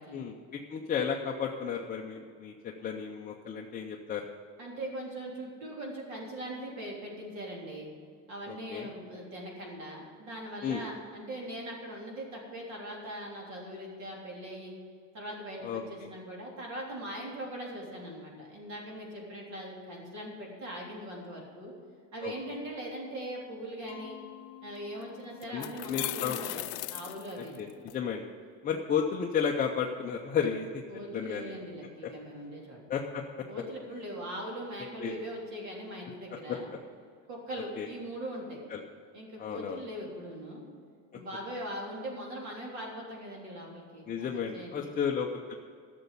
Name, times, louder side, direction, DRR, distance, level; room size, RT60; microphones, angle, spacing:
voice 1, 0.1-4.2 8.5-8.9 10.6-10.8 15.6-16.1 22.2-22.3 25.5-26.4 27.6-27.7 27.9-28.2 28.6-30.8 31.1-31.5 32.0-32.1 32.9-33.2 35.0-35.1 36.5-36.6 37.8-37.9 38.7-38.8 39.4-39.8 44.1-45.5, left 7 dB, 20° left, 0 dB, 0.6 m, -33 dB
voice 2, 4.6-7.9 8.3-14.7 15.1-21.7 22.1-24.2 24.6-26.6 26.9-27.6 30.9-32.8 33.5-36.7 37.3-38.6 39.1-40.6 41.1-45.0, right 1 dB, 45° right, -2 dB, 3.5 m, -41 dB
Mallet percussion, 23.9-28.6, left 16 dB, 55° left, 1.0 m, -54 dB
sound 1, 24.8-24.9 25.4-27.9, left 20 dB, 75° left, 0.5 m, -37 dB
12.0 x 6.9 x 8.2 m, 2.2 s
cardioid pair, 165°, 39 cm